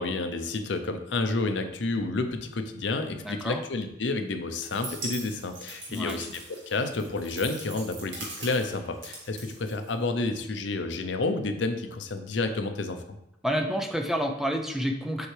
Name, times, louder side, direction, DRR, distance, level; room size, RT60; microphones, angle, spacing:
voice 1, 0.0-6.4 6.7-13.0, left 3 dB, 75° left, 7 dB, 0.6 m, -30 dB
voice 2, 3.2-3.6 5.9-6.2 13.4-15.3, equal, ahead, 3 dB, 0.5 m, -29 dB
sound 1, 4.6-10.3, right 2 dB, 75° right, 1.9 m, -41 dB
7.1 x 4.4 x 3.3 m, 0.82 s
head